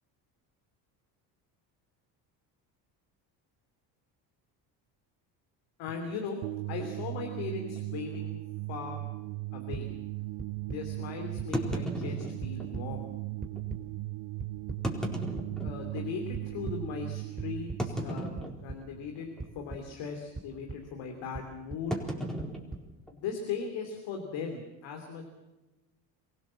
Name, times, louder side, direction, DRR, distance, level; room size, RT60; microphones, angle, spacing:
voice 1, 5.8-6.4 6.7-8.3 8.7-9.0 9.5-9.9 10.7-13.1 15.6-18.4 18.6-19.3 19.5-22.2 23.1-25.2, left 5 dB, 70° left, 3 dB, 3.1 m, -38 dB
sound 1, 6.4-19.5, right 20 dB, 65° right, 0.7 m, -38 dB
sound 2, 6.8-7.0 7.7-7.8 8.1-8.2 8.8-8.9 11.5-12.7 13.6-13.7 14.7-16.1 16.6-16.7 17.8-18.9 19.2-19.5 19.8-20.1 21.9-23.5, equal, ahead, 4.2 m, -36 dB
sound 3, 9.7-9.8 10.4-10.8 11.4-11.8 12.2-12.8 13.4-13.8 14.4-14.8 15.4-15.8 16.3-16.8 17.4-17.8 18.4-18.8 19.4-19.8 20.3-20.8 21.3-21.8 22.4-22.8, right 3 dB, 20° right, 3.4 m, -39 dB
25.0 x 16.0 x 7.6 m, 1.1 s
supercardioid pair, 75°, 46 cm